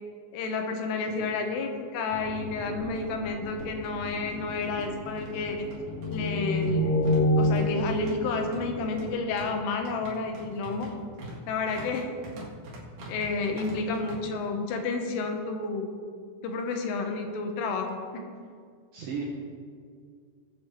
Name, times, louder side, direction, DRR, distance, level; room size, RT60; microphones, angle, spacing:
voice 1, 0.3-5.7 6.1-7.0 7.4-10.9 11.5-12.1 13.1-15.9 16.4-18.2, left 3 dB, 85° left, 4 dB, 3.7 m, -31 dB
voice 2, 1.0-1.3 18.9-19.2, right 6 dB, 75° right, -3 dB, 2.2 m, -36 dB
sound 1, 2.1-9.1, left 1 dB, 45° left, 1.5 m, -29 dB
sound 2, 2.1-2.2 2.5-2.6 3.4-14.2, right 1 dB, 55° right, 2.6 m, -45 dB
21.0 x 8.2 x 3.2 m, 2.1 s
omnidirectional pair, 5.6 m